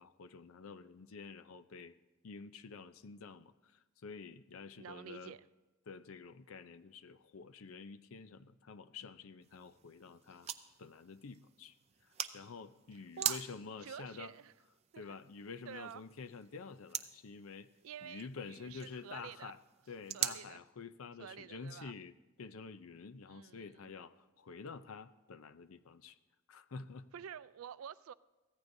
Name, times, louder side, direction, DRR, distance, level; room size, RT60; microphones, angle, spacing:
voice 1, 0.0-1.9 2.2-3.7 4.0-5.4 5.9-10.5 10.8-11.8 12.0-14.3 15.0-17.7 18.0-19.6 19.9-26.2 26.5-27.1, left 5 dB, 85° left, 13 dB, 0.6 m, -49 dB
voice 2, 4.8-5.4 12.9-13.4 13.8-14.5 14.9-15.2 15.7-16.0 17.8-19.5 20.1-20.6 21.2-22.0 23.3-23.9 27.1-28.1, right 8 dB, 85° right, 16 dB, 0.4 m, -49 dB
sound 1, 9.4-20.4, right 9 dB, 30° right, 0.5 m, -44 dB
23.5 x 16.0 x 2.7 m, 1.2 s
head